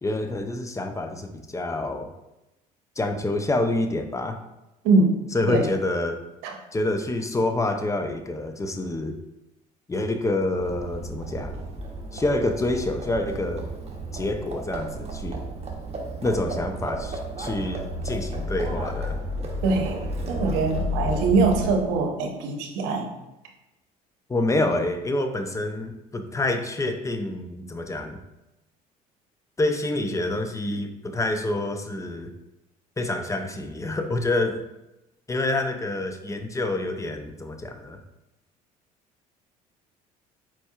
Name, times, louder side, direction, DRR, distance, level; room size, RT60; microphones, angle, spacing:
voice 1, 0.0-2.1 3.0-4.4 5.3-6.2 6.7-9.1 9.9-11.6 12.1-13.7 14.1-15.4 16.2-19.2 24.3-28.2 29.6-32.3 33.0-34.6 35.3-38.0, left 2 dB, 15° left, 7 dB, 0.5 m, -27 dB
Livestock farm animals working animals, 10.4-22.0, equal, 35° right, 0.9 m, -32 dB
voice 2, 19.6-23.1, right 3 dB, 75° right, 3 dB, 0.8 m, -23 dB
4.4 x 4.3 x 2.4 m, 0.94 s
hypercardioid pair, 70°, 18 cm